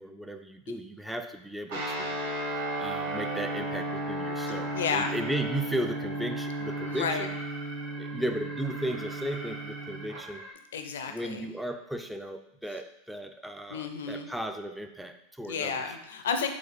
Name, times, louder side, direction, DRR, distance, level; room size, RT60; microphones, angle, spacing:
voice 1, 0.0-2.2 2.5-7.3 8.0-10.4 11.1-15.8, right 1 dB, 5° right, 6 dB, 0.4 m, -36 dB
Guitar, 1.7-10.2, right 1 dB, 70° right, 1.1 m, -34 dB
Alarm, 2.0-10.5, right 1 dB, 35° right, 1.2 m, -43 dB
voice 2, 4.5-5.1 6.8-7.3 10.7-11.5 13.7-14.3 15.5-16.5, left 6 dB, 80° left, 6 dB, 0.5 m, -32 dB
4.1 x 2.4 x 4.1 m, 0.79 s
hypercardioid pair, 95°, 0 cm